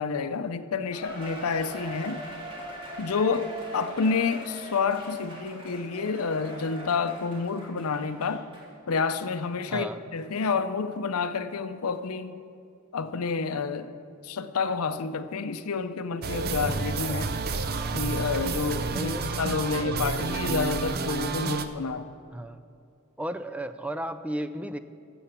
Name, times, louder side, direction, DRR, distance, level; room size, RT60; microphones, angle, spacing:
voice 1, 0.0-2.2 3.0-8.5 8.9-12.4 12.9-13.9 14.2-17.3 17.9-22.1, left 5 dB, 90° left, 11 dB, 0.6 m, -29 dB
Cheering, 0.9-8.7 9.1-9.2 9.8-9.9, right 1 dB, 25° right, 2.1 m, -41 dB
voice 2, 9.7-10.0 16.8-17.3 18.9-19.4 22.3-22.6 23.2-24.8, right 1 dB, 5° right, 11 dB, 0.3 m, -35 dB
sound 1, 16.2-21.7, right 4 dB, 45° right, 0.6 m, -30 dB
14.0 x 7.1 x 5.9 m, 2.4 s
head